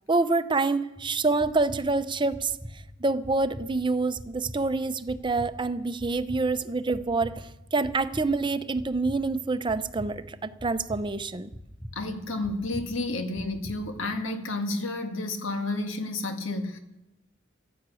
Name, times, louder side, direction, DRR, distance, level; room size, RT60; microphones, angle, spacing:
voice 1, 0.1-11.5, right 3 dB, 25° right, 0.6 m, -27 dB
sound 1, 1.0-14.1, equal, 10° left, 4.2 m, -44 dB
voice 2, 11.9-16.8, left 2 dB, 85° left, 1.8 m, -31 dB
13.0 x 10.5 x 8.3 m
head